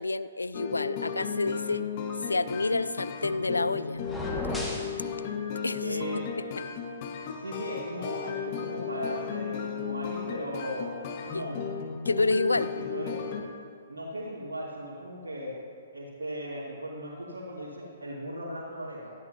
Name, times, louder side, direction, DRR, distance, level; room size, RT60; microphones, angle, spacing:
voice 1, 0.0-1.8 2.2-4.0 5.6-6.0 11.3-11.4 12.1-12.7, left 3 dB, 85° left, 16 dB, 0.4 m, -28 dB
sound 1, 0.5-13.4, left 7 dB, 40° left, 1.4 m, -35 dB
sound 2, 4.0-4.9, left 1 dB, 5° left, 1.8 m, -33 dB
voice 2, 5.8-6.3 7.4-11.7 12.7-13.2 13.9-15.5 15.9-19.1, equal, 75° right, -6 dB, 2.3 m, -37 dB
18.0 x 13.5 x 2.8 m, 2.1 s
figure-of-eight pair, 125°, 0 cm